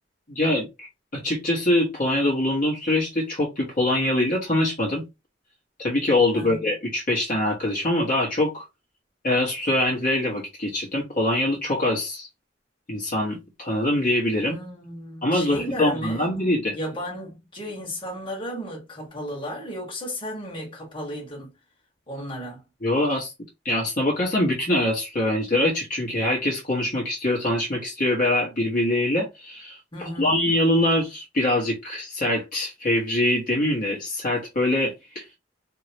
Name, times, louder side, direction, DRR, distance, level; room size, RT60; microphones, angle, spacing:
voice 1, 0.3-0.9 1.1-5.0 5.8-8.6 9.2-12.3 12.9-14.6 15.2-16.7 22.8-23.3 23.6-35.2, left 1 dB, 50° left, 1.3 m, -24 dB
voice 2, 14.4-16.3 16.7-21.5 22.1-22.6 29.9-30.4, equal, 30° left, 1.5 m, -34 dB
3.1 x 2.9 x 2.8 m
head